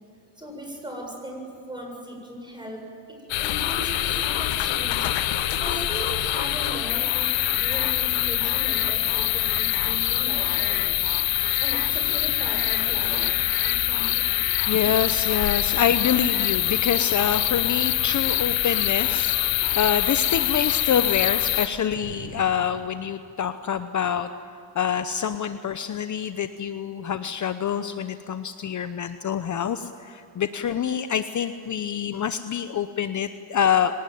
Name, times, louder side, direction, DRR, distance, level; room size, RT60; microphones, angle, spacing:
voice 1, 0.3-10.8 11.6-14.3, equal, 10° right, 1 dB, 7.6 m, -38 dB
sound 1, 3.3-21.7, left 14 dB, 80° left, 1.4 m, -24 dB
voice 2, 14.7-24.3 24.7-34.0, left 8 dB, 40° left, 10 dB, 0.9 m, -26 dB
sound 2, 21.9-23.8, right 7 dB, 60° right, 1.7 m, -43 dB
25.0 x 19.0 x 9.4 m, 2.6 s
cardioid pair, 110°, 44 cm